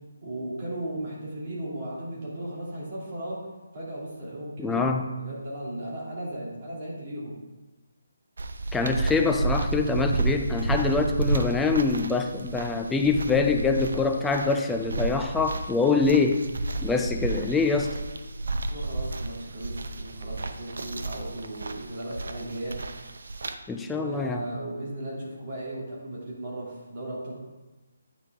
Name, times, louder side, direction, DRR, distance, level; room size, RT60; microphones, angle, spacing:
voice 1, 0.2-3.4 3.7-4.9 5.2-7.4 18.7-22.8 23.9-27.3, right 1 dB, 35° right, -5 dB, 2.5 m, -36 dB
voice 2, 4.6-5.0 8.7-16.4 16.8-17.9 23.7-24.4, left 4 dB, 5° left, 4 dB, 0.4 m, -24 dB
sound 1, 8.4-23.5, right 2 dB, 70° right, 0.6 m, -31 dB
8.9 x 4.7 x 3.5 m, 1.2 s
hypercardioid pair, 160°, 0 cm